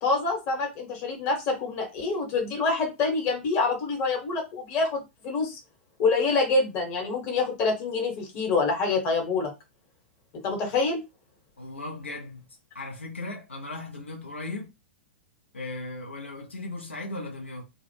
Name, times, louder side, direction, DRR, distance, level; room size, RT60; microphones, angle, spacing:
voice 1, 0.0-5.6 6.0-9.5 10.4-11.0, left 3 dB, 35° left, 1.2 m, -26 dB
voice 2, 11.6-12.5 12.7-14.7 15.5-17.6, left 2 dB, 85° left, 0.7 m, -37 dB
2.3 x 2.2 x 3.2 m
figure-of-eight pair, 105°, 6 cm